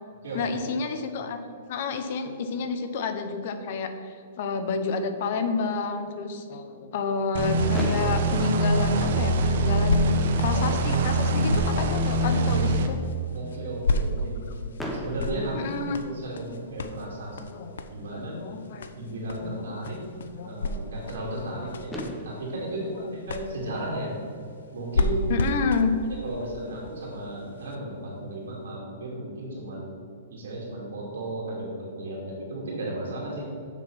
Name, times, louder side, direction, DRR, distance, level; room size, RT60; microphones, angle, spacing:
voice 1, 0.3-1.4 1.7-10.1 10.4-13.0 15.5-16.0 17.4-17.8 18.1-18.9 19.4-20.0 20.3-20.6 21.5-21.8 22.7-23.1 25.3-25.9, left 4 dB, 40° left, 8 dB, 0.7 m, -30 dB
sound 1, 7.3-12.9, right 1 dB, 45° right, 0.8 m, -23 dB
Fireworks, 7.7-9.8 10.6-10.7 10.9-11.1 11.4-11.5 14.8-16.6 18.3-18.4 21.4-21.5 21.9-24.2, equal, 5° left, 0.6 m, -38 dB
sound 2, 8.9-27.7 28.4-28.5, left 2 dB, 80° left, 0.7 m, -34 dB
voice 2, 13.3-14.5 14.9-15.7 16.0-17.4 17.9-18.4 19.0-20.0 20.4-22.0 22.2-22.9 23.3-24.1 24.7-25.3 26.2-29.9 30.3-33.5, right 1 dB, 75° right, -4 dB, 2.3 m, -34 dB
6.8 x 6.6 x 5.9 m, 2.5 s
hypercardioid pair, 180°, 0 cm